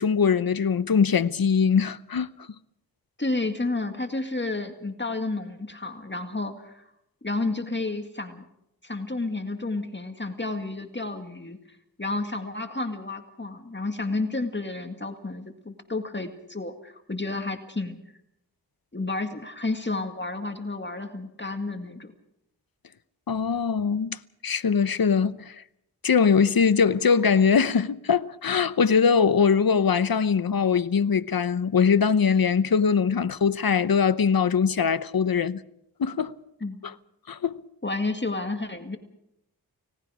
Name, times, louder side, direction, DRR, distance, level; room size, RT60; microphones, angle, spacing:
voice 1, 0.0-2.3 23.3-25.6 26.0-35.6 36.0-36.3 36.8-36.9 37.3-37.6, left 6 dB, 60° left, 0.9 m, -22 dB
voice 2, 3.2-6.9 7.2-8.4 8.8-11.6 12.0-18.0 18.9-22.1 36.6-36.8 37.8-39.0, left 2 dB, 30° left, 2.0 m, -31 dB
30.0 x 18.5 x 5.0 m
wide cardioid pair, 60°, 39 cm